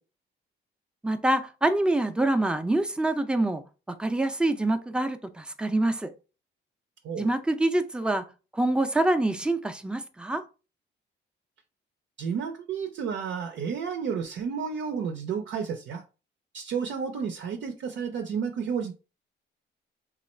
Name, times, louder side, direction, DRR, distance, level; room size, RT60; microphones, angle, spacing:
voice 1, 1.0-3.6 4.0-6.1 7.2-8.2 8.5-10.4, right 2 dB, 5° right, 0.5 m, -25 dB
voice 2, 12.2-16.0 16.5-18.9, right 6 dB, 70° right, 0.6 m, -31 dB
3.1 x 2.4 x 4.2 m
cardioid pair, 90°, 20 cm